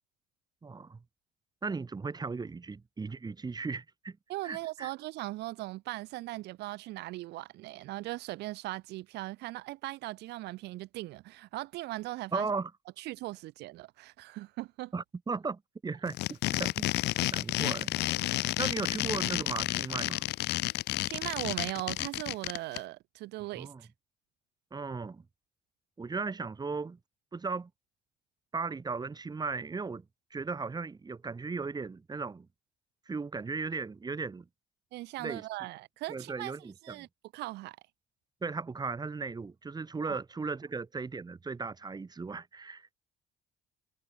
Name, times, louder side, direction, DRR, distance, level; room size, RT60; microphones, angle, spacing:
voice 1, 0.6-1.0 1.6-4.2 4.4-4.9 12.3-12.7 14.9-16.9 17.3-17.9 18.6-20.3 23.6-23.8 24.7-25.2 26.0-27.0 27.3-27.7 28.5-30.0 30.3-32.5 33.1-34.5 35.2-35.4 36.1-37.1 38.4-42.9, right 4 dB, 25° right, 3.9 m, -36 dB
voice 2, 4.3-12.5 13.0-14.9 21.0-23.9 34.9-36.5 36.8-37.1 37.3-37.8 40.1-40.2, right 18 dB, 80° right, 1.4 m, -39 dB
sound 1, 16.1-22.8, left 18 dB, 80° left, 1.2 m, -31 dB
cardioid pair, 110°, 17 cm